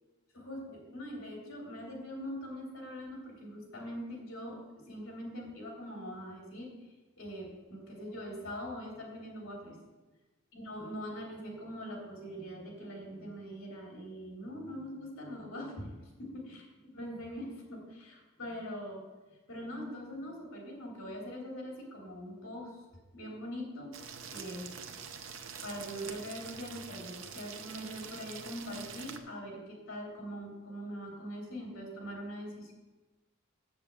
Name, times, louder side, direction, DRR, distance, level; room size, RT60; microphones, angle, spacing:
voice 1, 0.3-6.7 7.2-9.8 10.5-15.9 16.2-19.0 19.5-22.8 23.1-24.0 24.2-24.7 25.6-32.7, equal, 60° left, -1 dB, 3.0 m, -42 dB
sound 1, 23.9-29.2, right 6 dB, 60° right, 0.7 m, -45 dB
7.1 x 6.9 x 7.5 m, 1.2 s
head